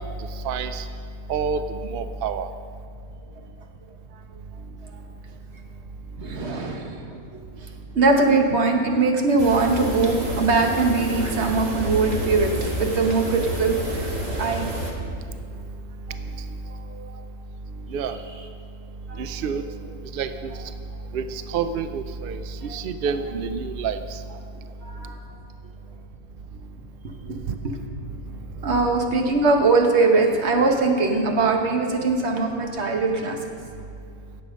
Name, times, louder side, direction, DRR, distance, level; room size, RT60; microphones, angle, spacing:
voice 1, 0.4-0.9 1.3-2.5 17.9-18.2 19.2-19.6 20.1-20.5 21.1-24.2 27.5-27.6, right 6 dB, 75° right, 10 dB, 0.5 m, -28 dB
voice 2, 6.2-7.4 7.9-14.1 14.4-14.7 16.1-16.2 16.7-17.2 19.1-19.2 22.7-22.8 24.8-25.2 27.2-27.7 28.6-33.4, right 3 dB, 50° right, 3 dB, 1.4 m, -22 dB
sound 1, 9.4-14.9, right 1 dB, 30° right, 1.4 m, -29 dB
16.5 x 7.6 x 5.2 m, 2.4 s
omnidirectional pair, 1.6 m